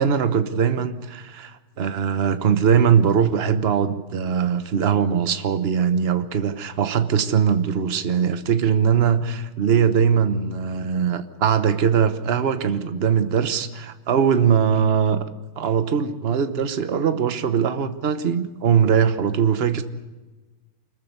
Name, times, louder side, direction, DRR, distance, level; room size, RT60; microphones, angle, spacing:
voice 1, 0.0-15.2 15.6-19.8, right 7 dB, 40° right, 10 dB, 0.9 m, -21 dB
25.5 x 14.5 x 9.4 m, 1.2 s
omnidirectional pair, 2.3 m